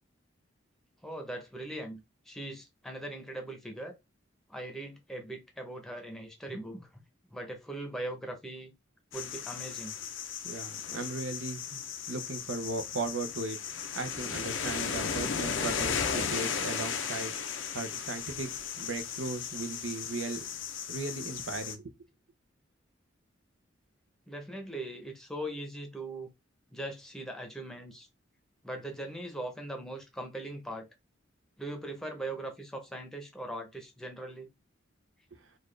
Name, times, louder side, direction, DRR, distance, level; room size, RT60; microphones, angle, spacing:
voice 1, 1.0-2.0 2.3-4.0 4.5-7.0 7.3-8.7 9.1-9.9 24.3-26.3 26.7-28.1 28.6-30.9 31.6-34.5, right 1 dB, ahead, 0.8 m, -40 dB
sound 1, 9.1-21.8, left 7 dB, 70° left, 0.6 m, -36 dB
voice 2, 10.4-11.8 12.1-13.6 14.0-17.3 17.7-18.5 18.8-20.4 20.9-21.9, right 3 dB, 75° right, 0.7 m, -37 dB
4.1 x 2.4 x 3.2 m
head